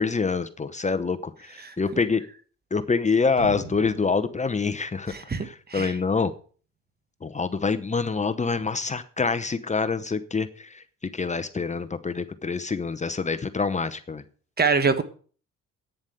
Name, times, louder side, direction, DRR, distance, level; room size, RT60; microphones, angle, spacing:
voice 1, 0.0-2.2 2.7-5.1 5.4-6.3 7.2-10.8 11.1-14.2, left 4 dB, 25° left, 11 dB, 0.9 m, -26 dB
sound 1, 3.4-5.5 5.9-6.0, right 3 dB, 65° right, 2.4 m, -42 dB
voice 2, 5.1-5.9 14.6-15.0, right 5 dB, 30° right, 11 dB, 1.3 m, -24 dB
9.3 x 7.2 x 7.9 m, 0.42 s
cardioid pair, 90°, 30 cm